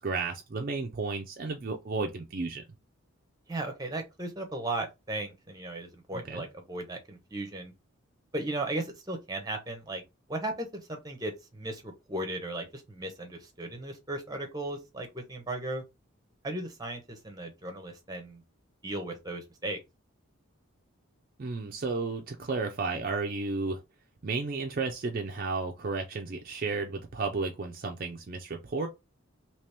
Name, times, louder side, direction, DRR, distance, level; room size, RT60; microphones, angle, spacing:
voice 1, 0.0-2.6 6.3-6.4 21.4-23.8 24.2-28.9, right 3 dB, 45° right, 0.4 m, -33 dB
voice 2, 3.5-7.7 8.3-10.0 10.3-15.8 16.4-18.4 18.8-19.8, right 2 dB, 20° right, 0.8 m, -36 dB
2.9 x 2.9 x 3.3 m
head